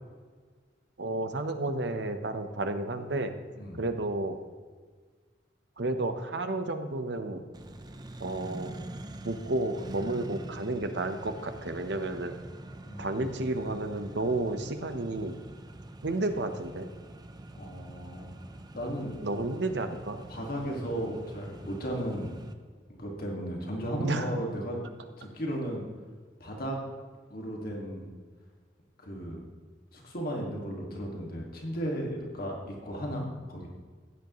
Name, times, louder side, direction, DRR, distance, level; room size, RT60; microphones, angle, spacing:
voice 1, 1.0-3.3 3.8-4.4 5.8-7.4 8.2-8.8 9.2-12.4 13.0-15.4 16.0-16.9 19.2-20.2 24.0-24.3, right 2 dB, 70° right, 7 dB, 1.0 m, -31 dB
Accelerating revving vroom, 7.5-22.5, right 1 dB, 25° right, 0.6 m, -45 dB
voice 2, 12.9-13.4 17.5-18.3 18.7-19.1 20.3-22.3 23.0-24.8 25.2-25.8 26.4-26.8 27.3-28.1 29.0-29.4 29.9-33.7, equal, 55° left, -1 dB, 2.0 m, -35 dB
15.5 x 9.7 x 3.1 m, 1.5 s
head